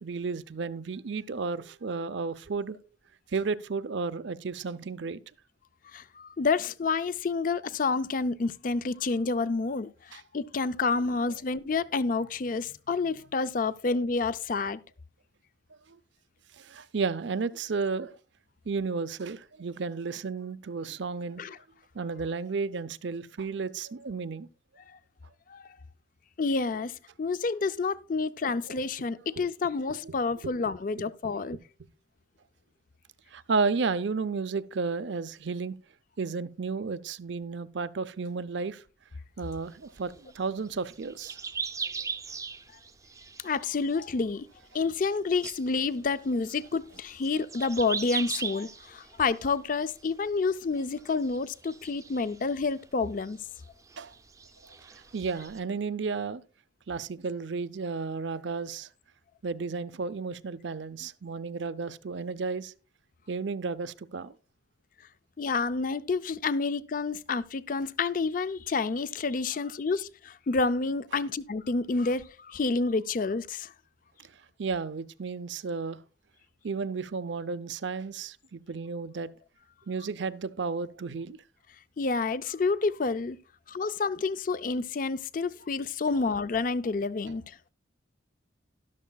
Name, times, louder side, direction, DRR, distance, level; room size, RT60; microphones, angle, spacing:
voice 1, 0.0-2.8 3.3-5.2 10.1-10.2 11.3-11.4 15.9-16.0 16.6-18.1 18.7-21.4 21.9-24.5 28.7-28.8 29.9-30.1 30.4-30.5 33.3-35.7 36.2-38.8 39.4-41.4 54.0-54.1 55.1-56.4 56.9-58.9 59.4-62.7 63.3-64.3 74.6-76.0 76.6-79.3 79.9-81.4, right 4 dB, 70° right, 0.6 m, -33 dB
voice 2, 5.9-14.8 21.4-21.6 25.5-25.6 26.4-31.6 43.4-44.5 44.7-53.4 65.4-73.7 82.0-83.4 83.7-87.4, left 4 dB, 45° left, 0.4 m, -29 dB
sound 1, 39.5-44.3 44.6-45.1 45.4-50.5 50.8-52.8 53.1-55.6, right 5 dB, 15° right, 0.6 m, -40 dB
12.5 x 12.0 x 2.3 m
head